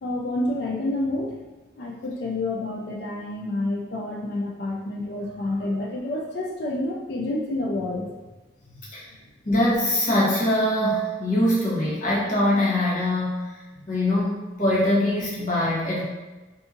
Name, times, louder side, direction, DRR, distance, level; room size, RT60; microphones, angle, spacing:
voice 1, 0.0-1.4 1.7-8.1 13.8-13.9, left 2 dB, 65° left, -1 dB, 0.4 m, -29 dB
voice 2, 9.5-16.0, left 1 dB, 45° left, -6 dB, 0.9 m, -23 dB
2.7 x 2.5 x 2.5 m, 1.2 s
head